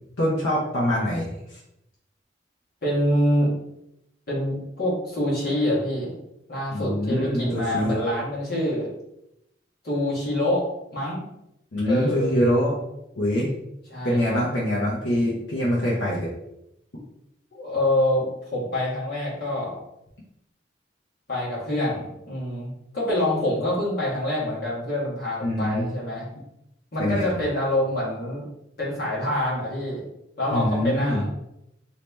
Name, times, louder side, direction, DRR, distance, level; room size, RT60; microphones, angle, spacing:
voice 1, 0.2-1.6 6.7-8.0 11.7-12.7 13.2-13.5 14.0-16.3 25.4-25.9 27.0-27.3 30.5-31.2, equal, 75° left, -6 dB, 0.8 m, -24 dB
voice 2, 2.8-3.5 4.3-6.1 6.5-8.9 9.8-10.7 10.9-11.3 11.9-12.3 13.9-14.4 17.6-18.2 18.5-19.8 21.3-26.3 26.9-28.4 28.8-30.0 30.4-31.3, left 1 dB, 50° left, -6 dB, 1.5 m, -26 dB
3.2 x 2.8 x 3.3 m, 0.83 s
head